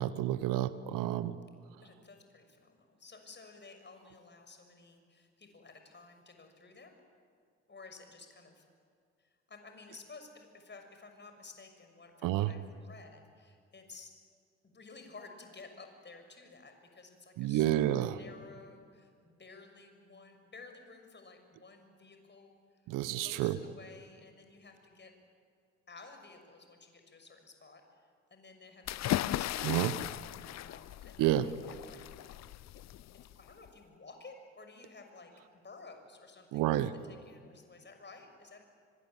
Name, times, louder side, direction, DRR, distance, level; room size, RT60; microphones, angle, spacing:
voice 1, 0.0-1.4 12.2-12.5 17.4-18.2 22.9-23.6 29.6-29.9 31.2-31.5 36.5-36.9, right 13 dB, 65° right, 15 dB, 1.1 m, -30 dB
voice 2, 1.8-6.9 7.7-8.6 9.2-14.1 14.6-22.5 23.2-25.1 25.9-28.0 28.3-32.0 33.4-35.3 35.6-36.8 37.0-38.6, left 3 dB, 30° left, 5 dB, 6.5 m, -54 dB
sound 1, 28.9-33.7, left 14 dB, 50° left, 0.7 m, -37 dB
25.5 x 25.0 x 9.2 m, 2.1 s
hypercardioid pair, 50°, 35 cm